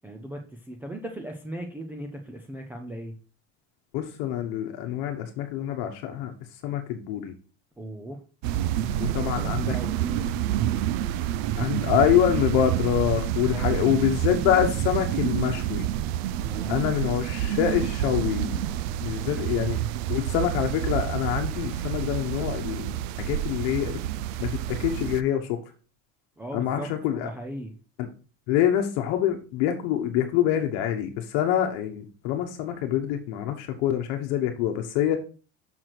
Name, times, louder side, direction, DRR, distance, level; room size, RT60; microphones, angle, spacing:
voice 1, 0.0-3.1 7.8-8.2 9.0-10.4 13.5-13.9 16.4-17.3 19.3-19.5 26.4-26.9 27.2-27.7, right 1 dB, 5° right, 3 dB, 0.5 m, -38 dB
voice 2, 3.9-6.3 6.6-7.3 9.1-9.8 11.6-15.9 16.7-18.6 19.0-19.7 20.1-22.9 23.2-24.0 24.4-25.6 26.5-27.3 28.5-35.2, left 10 dB, 65° left, 4 dB, 1.1 m, -26 dB
sound 1, 8.4-25.2, right 11 dB, 70° right, 0.5 m, -28 dB
6.2 x 4.6 x 6.0 m, 0.37 s
cardioid pair, 165°, 32 cm